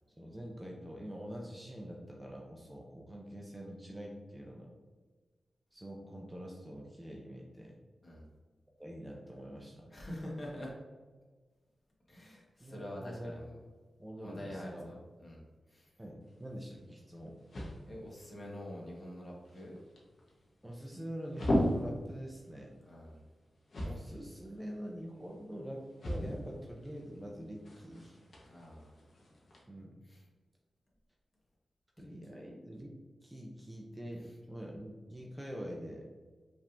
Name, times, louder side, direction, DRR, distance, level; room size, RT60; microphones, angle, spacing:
voice 1, 0.2-4.7 5.7-7.7 8.8-9.9 12.6-13.4 14.0-14.9 16.0-17.4 20.6-22.8 23.8-28.2 29.7-30.0 32.0-32.9 33.2-36.1, equal, 10° right, -1 dB, 0.6 m, -45 dB
voice 2, 9.9-10.7 12.1-13.6 14.2-15.4 15.7-15.9 17.8-19.8 22.8-23.2 28.4-28.9 30.0-30.2 34.2-34.3, left 1 dB, 35° left, -3 dB, 1.3 m, -45 dB
sound 1, 16.2-29.6, equal, 60° left, 1.0 m, -40 dB
5.2 x 3.5 x 2.6 m, 1.4 s
wide cardioid pair, 100°, 0 cm